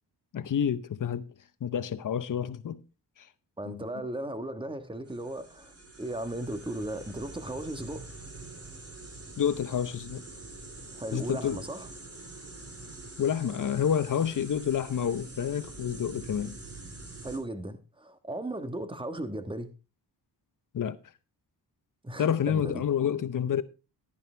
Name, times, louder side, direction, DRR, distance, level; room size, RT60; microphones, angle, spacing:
voice 1, 0.3-1.3 1.6-2.8 3.7-3.8 9.4-10.2 11.1-11.6 13.2-16.6 20.7-21.0 22.2-23.6, left 8 dB, 50° left, 0.8 m, -29 dB
voice 2, 3.6-8.0 10.9-11.9 17.2-19.7 22.0-22.8, right 1 dB, 10° right, 1.4 m, -36 dB
sound 1, 5.1-17.4, right 2 dB, 35° right, 2.7 m, -45 dB
11.0 x 10.5 x 3.3 m
cardioid pair, 90°, 41 cm